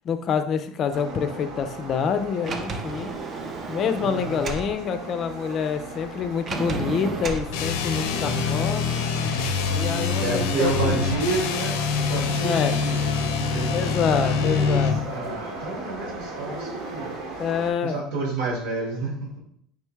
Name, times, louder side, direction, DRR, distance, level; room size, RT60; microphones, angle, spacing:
voice 1, 0.0-3.1 3.7-9.0 9.7-11.1 12.4-12.8 13.7-15.0 17.4-18.0, left 7 dB, 35° left, 9 dB, 0.4 m, -27 dB
sound 1, 0.9-17.7, right 2 dB, 65° right, 1.1 m, -36 dB
Sliding door, 2.4-4.7 6.5-7.5, right 4 dB, 30° right, 0.5 m, -32 dB
voice 2, 4.0-4.5 7.9-8.4 10.2-17.5 17.8-19.4, right 3 dB, 90° right, -2 dB, 1.7 m, -30 dB
sound 2, 7.5-15.0, left 6 dB, 85° left, 0.5 m, -25 dB
4.9 x 3.4 x 3.2 m, 0.66 s
cardioid pair, 145°, 0 cm